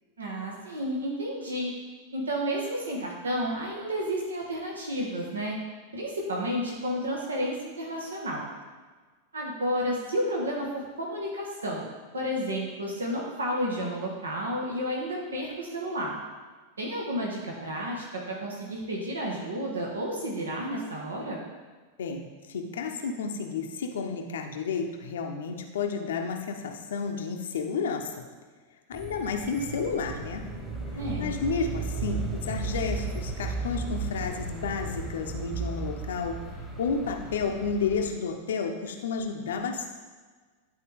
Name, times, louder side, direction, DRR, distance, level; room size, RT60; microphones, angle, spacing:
voice 1, 0.2-1.7 2.1-5.6 5.9-8.4 9.3-11.9 12.1-16.2 16.8-21.4 30.9-31.3, equal, 70° right, -2 dB, 1.4 m, -31 dB
voice 2, 22.0-28.2 28.9-30.5 31.2-36.4 36.8-39.9, left 5 dB, 60° left, 3 dB, 0.7 m, -31 dB
sound 1, 28.9-38.1, right 3 dB, 5° right, 1.4 m, -35 dB
11.0 x 4.2 x 3.5 m, 1.4 s
figure-of-eight pair, 90°, 0 cm